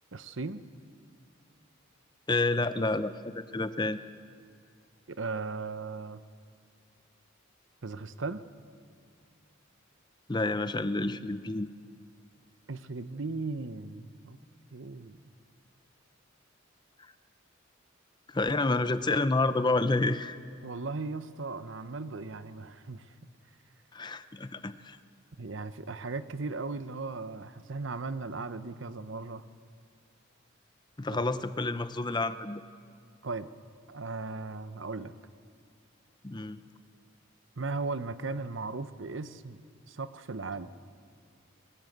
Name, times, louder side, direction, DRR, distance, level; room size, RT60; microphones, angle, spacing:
voice 1, 0.1-0.6 5.1-6.2 7.8-8.4 12.7-14.4 14.7-15.2 20.6-23.1 25.4-29.4 31.1-31.2 33.2-33.5 33.9-35.1 37.6-39.6 39.9-40.7, right 3 dB, 65° right, 12 dB, 0.9 m, -37 dB
voice 2, 2.3-4.0 10.3-11.7 18.3-20.4 23.9-25.0 31.0-32.6 36.2-36.6, left 2 dB, 20° left, 12 dB, 0.6 m, -29 dB
22.0 x 20.5 x 8.0 m, 2.1 s
head